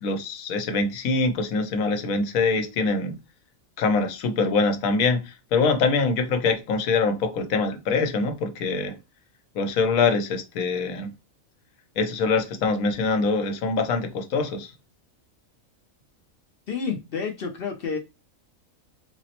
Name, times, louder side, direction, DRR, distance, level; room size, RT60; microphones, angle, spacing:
voice 1, 0.0-3.1 3.8-9.0 9.5-11.1 12.0-14.7, left 4 dB, 90° left, 1.1 m, -24 dB
voice 2, 16.7-18.0, left 5 dB, 60° left, 0.6 m, -29 dB
4.0 x 2.0 x 2.8 m
omnidirectional pair, 1.4 m